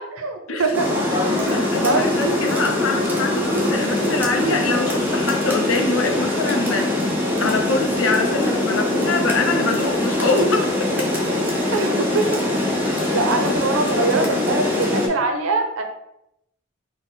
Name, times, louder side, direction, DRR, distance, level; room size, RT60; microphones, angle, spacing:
voice 1, 0.2-0.9 1.1-1.4 1.7-2.1 11.7-12.4 13.1-15.8, right 3 dB, 85° right, 5 dB, 0.6 m, -23 dB
Rain, 0.7-15.1, left 1 dB, 10° right, 0.7 m, -22 dB
voice 2, 1.3-7.1 7.4-11.1 12.9-13.2, left 3 dB, 75° left, 4 dB, 0.6 m, -24 dB
4.0 x 2.0 x 3.9 m, 0.81 s
head